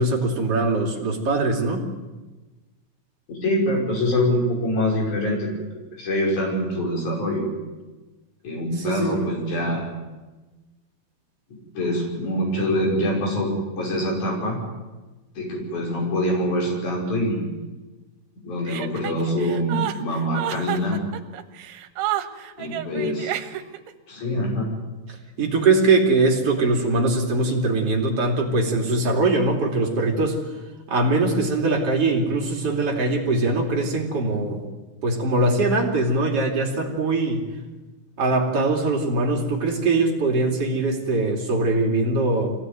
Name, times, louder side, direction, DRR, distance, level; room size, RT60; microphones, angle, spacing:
voice 1, 0.0-1.8 8.8-9.2 25.4-30.4 30.9-34.6 35.0-37.5 38.2-42.5, right 2 dB, 35° right, 0 dB, 3.2 m, -22 dB
voice 2, 3.3-5.5 6.0-7.5 8.4-9.9 11.7-14.6 15.3-17.7 18.4-21.0 22.6-23.4 24.1-24.7, equal, 40° left, -1 dB, 6.8 m, -24 dB
Chuckle chortle, 18.7-23.9, right 13 dB, 80° right, 3.4 m, -30 dB
24.0 x 17.5 x 9.4 m, 1.2 s
omnidirectional pair, 5.6 m